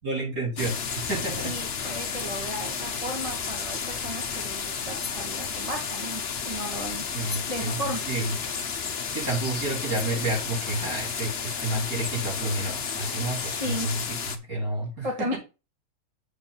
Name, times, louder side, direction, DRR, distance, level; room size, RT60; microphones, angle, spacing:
voice 1, 0.0-1.5 7.1-7.8 8.1-8.3 9.1-14.0 14.5-15.4, right 1 dB, 65° right, -3 dB, 6.3 m, -30 dB
sound 1, 0.6-14.4, left 6 dB, 45° left, 1.1 m, -32 dB
voice 2, 1.4-7.1 7.5-8.0 13.4-13.9 15.0-15.4, equal, 20° right, 1 dB, 2.0 m, -34 dB
8.1 x 4.8 x 5.5 m, 0.29 s
omnidirectional pair, 1.6 m